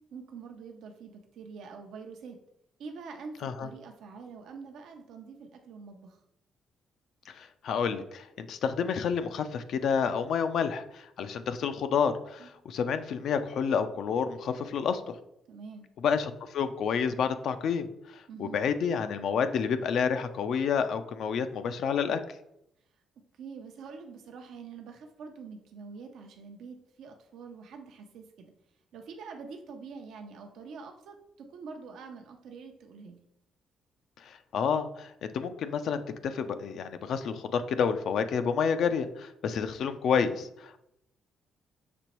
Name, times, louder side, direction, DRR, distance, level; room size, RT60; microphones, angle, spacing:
voice 1, 0.1-2.4 2.8-6.2 12.4-12.6 15.5-15.9 18.3-18.6 23.4-28.5 28.9-33.2, right 5 dB, 75° right, 4 dB, 0.6 m, -45 dB
voice 2, 7.3-15.2 16.0-17.9 18.1-22.2 34.2-40.8, left 6 dB, 70° left, 10 dB, 0.4 m, -29 dB
6.0 x 3.0 x 3.0 m, 0.81 s
cardioid pair, 90°, 0 cm